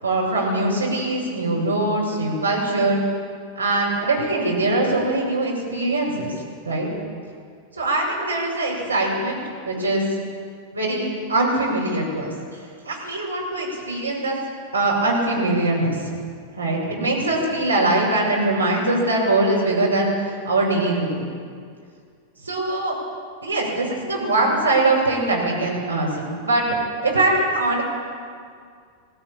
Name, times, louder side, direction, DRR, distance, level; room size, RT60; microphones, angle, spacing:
voice 1, 0.0-3.0 3.6-6.3 6.6-6.9 7.8-9.4 9.6-10.0 10.7-14.4 14.7-16.1 16.6-21.2 22.4-23.0 23.4-26.6 27.0-27.8, right 2 dB, 80° right, -3 dB, 6.6 m, -22 dB
21.5 x 16.5 x 8.9 m, 2.1 s
figure-of-eight pair, 90°, 0 cm